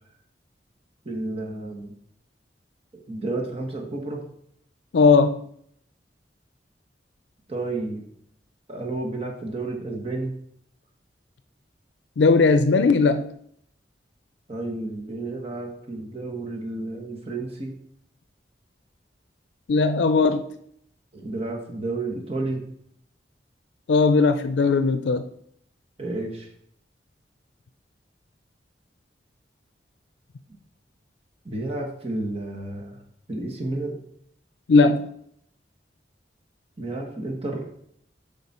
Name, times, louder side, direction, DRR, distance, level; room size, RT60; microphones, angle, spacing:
voice 1, 1.0-1.9 3.1-4.2 7.5-8.0 8.7-10.3 14.5-17.7 21.1-22.6 26.0-26.5 31.4-33.0 33.3-34.0 36.8-37.6, right 2 dB, 35° right, 1 dB, 1.4 m, -31 dB
voice 2, 4.9-5.4 12.2-13.2 19.7-20.5 23.9-25.2 34.7-35.0, left 4 dB, 90° left, 10 dB, 0.4 m, -18 dB
7.9 x 5.3 x 4.2 m, 0.69 s
head